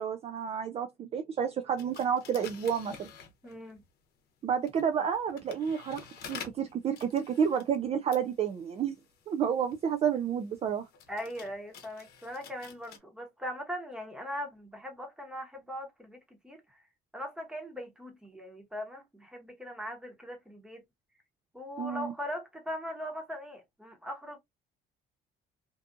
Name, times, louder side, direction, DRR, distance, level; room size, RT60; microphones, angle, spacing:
voice 1, 0.0-3.1 4.4-6.0 6.3-9.0 9.3-10.8 21.8-22.1, right 7 dB, 35° right, 0.4 m, -30 dB
sound 1, 1.8-3.8 4.5-13.0, left 7 dB, 65° left, 0.8 m, -50 dB
voice 2, 3.4-3.8 11.1-16.8 17.1-20.8 21.5-24.4, equal, 5° right, 1.0 m, -40 dB
2.6 x 2.4 x 2.4 m
cardioid pair, 110°, 17 cm